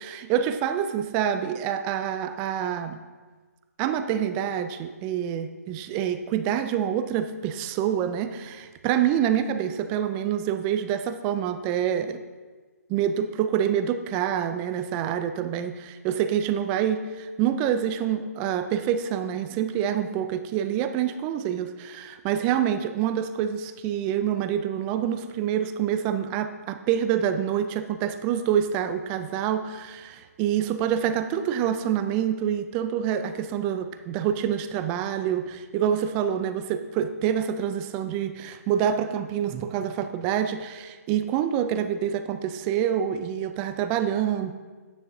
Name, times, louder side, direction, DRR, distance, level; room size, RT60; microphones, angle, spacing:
voice 1, 0.0-3.0 3.8-12.2 12.9-44.5, right 9 dB, 15° right, 10 dB, 0.3 m, -26 dB
10.0 x 9.2 x 2.7 m, 1.4 s
hypercardioid pair, 150°, 9 cm